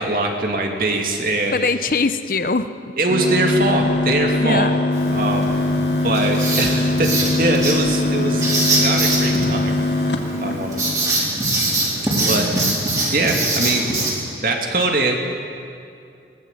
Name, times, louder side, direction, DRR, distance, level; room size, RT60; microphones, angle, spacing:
voice 1, 0.0-1.7 3.0-4.7 5.1-5.5 6.0-8.4 8.8-9.8 10.4-10.8 12.2-12.7 13.1-13.8 14.4-15.2, right 2 dB, 50° right, 2 dB, 2.7 m, -22 dB
voice 2, 1.5-2.7 4.4-4.7 12.1-12.8, left 3 dB, 50° left, 11 dB, 0.8 m, -22 dB
sound 1, 3.1-11.2, left 2 dB, 80° left, 1.8 m, -21 dB
Writing, 4.9-14.1, right 2 dB, 20° right, 4.3 m, -23 dB
21.0 x 19.0 x 8.6 m, 2.5 s
head